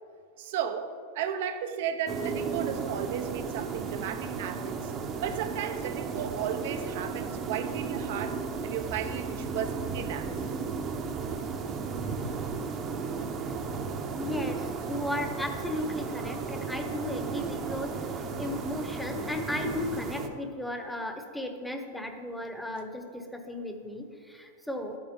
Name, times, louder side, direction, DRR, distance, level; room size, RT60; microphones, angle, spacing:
voice 1, 0.4-4.9 5.2-10.5, right 8 dB, 65° right, 8 dB, 0.9 m, -34 dB
sound 1, 2.1-20.3, right 5 dB, 35° right, 1.0 m, -34 dB
voice 2, 14.2-25.0, left 1 dB, 5° left, 5 dB, 1.1 m, -35 dB
12.0 x 8.8 x 3.8 m, 2.3 s
hypercardioid pair, 115°, 0 cm